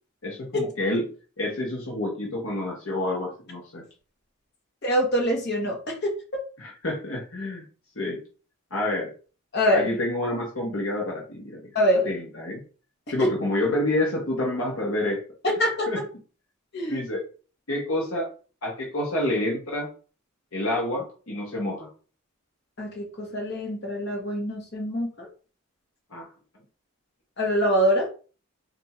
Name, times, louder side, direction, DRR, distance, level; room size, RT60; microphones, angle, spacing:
voice 1, 0.2-1.1 1.4-3.8 6.6-7.6 8.0-8.2 8.7-9.1 9.7-11.6 12.0-12.6 13.1-15.2 15.9-16.0 16.9-17.2 17.7-18.3 18.6-19.9 20.5-21.9 26.1-26.3, left 1 dB, 65° left, -2 dB, 1.0 m, -28 dB
voice 2, 4.8-6.1 9.5-9.9 11.7-12.1 13.2-13.3 15.4-15.9 16.7-17.1 22.8-25.3 27.4-28.1, equal, 50° left, 0 dB, 1.3 m, -24 dB
3.4 x 2.6 x 4.2 m, 0.38 s
head